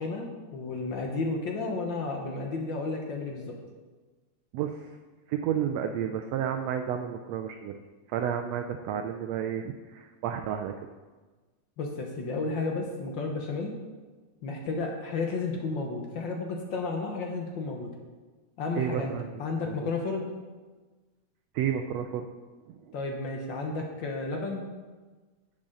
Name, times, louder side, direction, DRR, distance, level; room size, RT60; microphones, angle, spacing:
voice 1, 0.0-3.6 11.8-13.7 14.4-17.9 18.6-19.1 19.4-20.2 22.9-24.6, left 3 dB, 70° left, 2 dB, 1.1 m, -32 dB
voice 2, 4.5-4.9 5.3-7.7 8.1-10.7 18.8-19.9 21.5-22.3 22.7-23.0, right 9 dB, 85° right, 6 dB, 1.5 m, -31 dB
10.5 x 8.8 x 3.8 m, 1.3 s
omnidirectional pair, 3.5 m